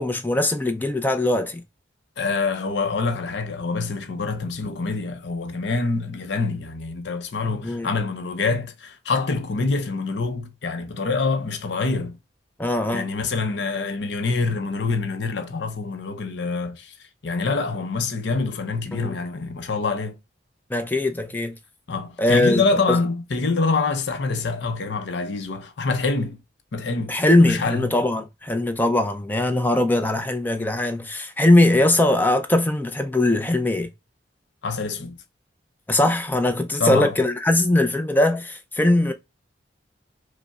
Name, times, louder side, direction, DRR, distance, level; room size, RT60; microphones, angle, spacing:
voice 1, 0.0-1.6 7.6-7.9 12.6-13.1 18.9-19.2 20.7-21.6 22.2-22.6 22.9-23.0 27.1-33.9 35.9-39.1, left 1 dB, 10° left, 0.4 m, -20 dB
voice 2, 2.2-12.2 12.9-16.9 17.2-20.2 21.9-26.4 26.7-27.9 34.6-35.2 36.8-37.1, left 3 dB, 60° left, 0.6 m, -26 dB
5.1 x 2.0 x 2.3 m
head